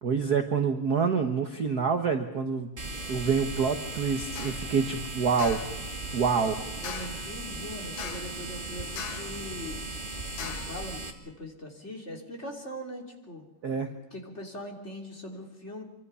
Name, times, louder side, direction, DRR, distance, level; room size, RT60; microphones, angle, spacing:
voice 1, 0.0-2.7 3.1-5.6 6.1-6.6 13.6-13.9, right 5 dB, 60° right, 6 dB, 1.0 m, -27 dB
sound 1, 2.8-11.1, right 2 dB, 20° right, 1.6 m, -37 dB
sound 2, 4.4-4.7 5.4-5.8 6.8-7.3 8.0-8.4 9.0-9.4 10.4-10.8, left 9 dB, 65° left, 2.4 m, -40 dB
voice 2, 6.8-9.8 10.4-13.4 14.1-15.8, equal, 20° left, 1 dB, 3.1 m, -41 dB
26.5 x 25.0 x 5.6 m, 0.94 s
omnidirectional pair, 3.6 m